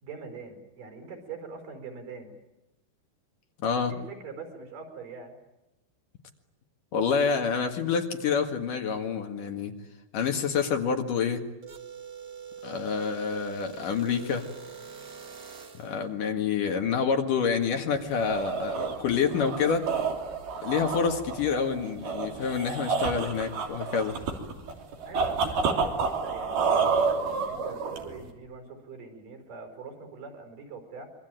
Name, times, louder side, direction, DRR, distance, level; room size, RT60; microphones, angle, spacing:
voice 1, 0.0-2.3 3.8-5.3 25.1-31.1, right 4 dB, 60° right, 6 dB, 6.4 m, -43 dB
voice 2, 6.9-9.7 10.1-11.4 12.6-14.4 15.8-19.9 20.6-24.2, left 6 dB, 65° left, 4 dB, 3.3 m, -27 dB
sound 1, 11.6-16.0, right 7 dB, 35° right, 1.5 m, -44 dB
sound 2, 18.0-28.3, right 5 dB, 80° right, 5.1 m, -29 dB
26.0 x 24.0 x 9.2 m, 0.97 s
omnidirectional pair, 4.3 m